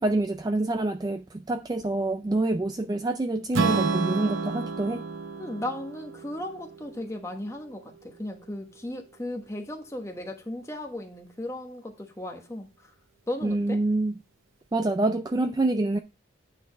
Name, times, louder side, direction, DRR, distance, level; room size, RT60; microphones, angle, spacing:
voice 1, 0.0-5.0 13.4-14.2 14.7-16.0, right 2 dB, 20° right, 0.3 m, -26 dB
Strum, 3.5-7.7, right 4 dB, 80° right, 0.8 m, -30 dB
voice 2, 5.4-12.9 13.3-13.8, left 1 dB, 15° left, 1.2 m, -36 dB
9.2 x 4.0 x 5.2 m
head